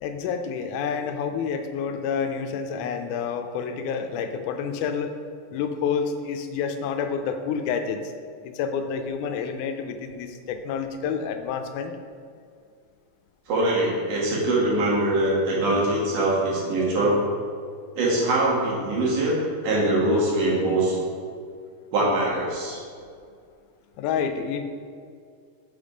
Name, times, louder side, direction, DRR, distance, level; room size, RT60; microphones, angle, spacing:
voice 1, 0.0-5.1 5.5-8.0 8.4-11.9 24.0-24.6, left 6 dB, 85° left, 7 dB, 2.0 m, -28 dB
voice 2, 13.5-17.2 18.0-19.4 19.6-21.0 21.9-22.8, right 1 dB, 90° right, -5 dB, 3.2 m, -23 dB
6.6 x 5.2 x 5.1 m, 2.2 s
omnidirectional pair, 3.5 m